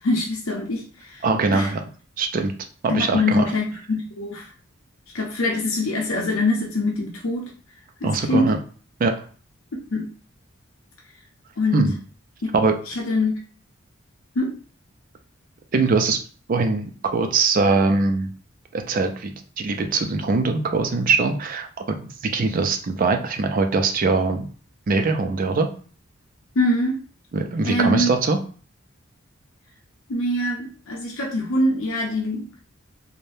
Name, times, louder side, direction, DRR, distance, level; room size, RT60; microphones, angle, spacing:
voice 1, 0.0-1.2 1.5-1.7 2.9-4.5 5.1-7.5 8.0-8.5 9.9-10.1 11.6-11.9 12.9-13.3 14.3-14.5 26.6-27.0 27.7-28.1 30.1-32.5, left 2 dB, 85° left, -1 dB, 0.6 m, -23 dB
voice 2, 1.2-1.8 2.2-2.5 2.8-3.5 8.0-8.6 9.0-9.3 11.7-11.9 12.5-12.8 15.7-16.2 16.5-18.3 18.7-24.4 24.9-25.7 27.3-28.4, right 3 dB, 40° right, 6 dB, 0.4 m, -22 dB
3.3 x 2.1 x 2.6 m, 0.41 s
head